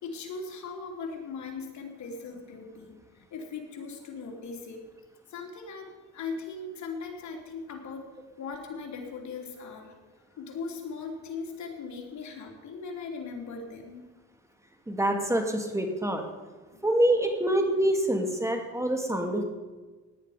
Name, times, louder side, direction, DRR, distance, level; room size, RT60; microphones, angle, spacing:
voice 1, 0.0-4.8 5.3-8.1 8.4-10.0 10.3-14.1 16.7-16.8, left 4 dB, 70° left, 1 dB, 3.3 m, -39 dB
voice 2, 14.9-16.2 16.8-19.4, right 1 dB, 10° right, 4 dB, 2.5 m, -26 dB
17.5 x 10.0 x 5.1 m, 1.3 s
cardioid pair, 90°, 30 cm